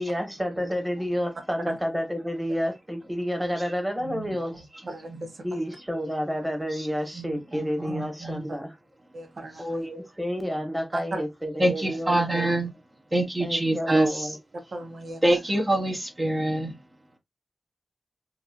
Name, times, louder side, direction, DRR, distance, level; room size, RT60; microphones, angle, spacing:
voice 1, 0.0-4.6 5.4-8.7 9.6-12.5 13.4-14.4, equal, 10° right, 1.3 m, -30 dB
voice 2, 4.0-4.4 6.8-6.9 7.1-8.5 11.6-12.7 13.1-14.3 15.2-16.8, right 1 dB, 30° right, 0.8 m, -25 dB
voice 3, 4.9-5.8 9.1-9.9 10.9-11.2 14.7-15.4, right 2 dB, 70° right, 0.9 m, -37 dB
3.0 x 2.5 x 2.4 m
cardioid pair, 50°, 0 cm